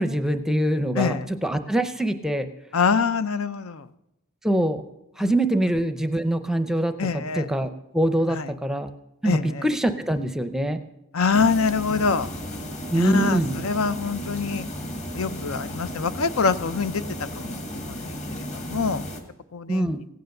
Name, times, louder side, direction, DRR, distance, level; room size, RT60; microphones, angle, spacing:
voice 1, 0.0-2.5 4.4-4.8 5.2-8.9 9.2-10.8 12.9-13.6 19.7-20.0, right 1 dB, ahead, 9 dB, 0.6 m, -24 dB
voice 2, 0.9-1.3 2.7-3.8 5.2-5.3 7.0-7.5 8.3-8.5 9.2-9.6 11.1-12.3 12.9-14.7 15.1-17.0 17.4-19.0 19.5-19.9, left 5 dB, 80° left, 14 dB, 0.6 m, -25 dB
sound 1, 11.3-19.2, equal, 35° left, 1.5 m, -34 dB
16.0 x 9.3 x 6.6 m, 0.89 s
head